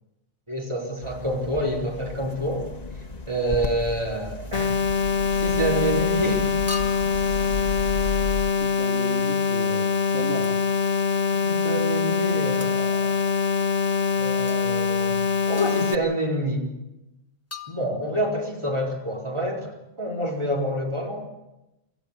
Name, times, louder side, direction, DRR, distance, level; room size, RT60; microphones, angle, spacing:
voice 1, 0.5-2.7 3.3-4.8 5.3-6.5 7.0-7.1 11.3-13.2 14.2-15.1 15.5-16.7 17.7-21.3, right 1 dB, 25° right, -1 dB, 4.4 m, -27 dB
sound 1, 1.0-8.5, left 4 dB, 35° left, 1.4 m, -34 dB
sound 2, 4.5-15.9, left 5 dB, 75° left, 1.6 m, -24 dB
sound 3, 6.7-7.3 10.4-10.7 12.6-12.9 14.5-14.6 15.6-16.1 17.5-18.3, left 4 dB, 15° left, 1.3 m, -39 dB
voice 2, 8.5-10.6, right 2 dB, 65° right, 2 dB, 2.2 m, -35 dB
24.0 x 14.5 x 8.4 m, 0.91 s
omnidirectional pair, 1.2 m